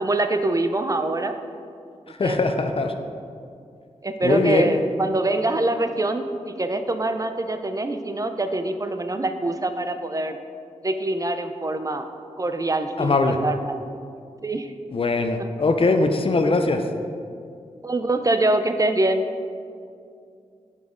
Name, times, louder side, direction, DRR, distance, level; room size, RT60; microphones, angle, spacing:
voice 1, 0.0-1.3 2.2-2.4 4.0-10.4 10.8-12.1 12.4-13.2 13.4-13.8 14.4-14.7 15.4-15.5 17.8-19.2, right 2 dB, 30° right, 8 dB, 0.5 m, -24 dB
voice 2, 2.1-2.9 4.2-4.7 13.0-13.4 14.9-16.8, left 3 dB, 45° left, 6 dB, 0.6 m, -21 dB
7.3 x 5.8 x 3.7 m, 2.4 s
cardioid pair, 50°, 12 cm